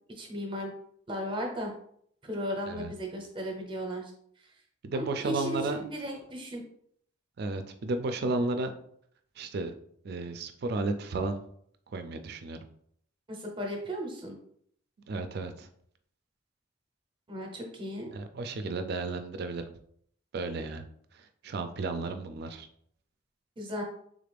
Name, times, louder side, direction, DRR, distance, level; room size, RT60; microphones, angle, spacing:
voice 1, 0.1-0.7 1.1-1.7 2.2-4.1 4.9-6.6 13.3-14.4 17.3-18.1 23.6-23.8, equal, 25° right, 2 dB, 0.7 m, -35 dB
voice 2, 4.8-5.8 7.4-8.7 9.4-9.7 10.0-11.4 11.9-12.6 15.1-15.7 18.1-19.7 20.3-20.8 21.1-22.7, right 3 dB, 55° right, 8 dB, 0.4 m, -33 dB
3.6 x 2.4 x 3.3 m, 0.66 s
head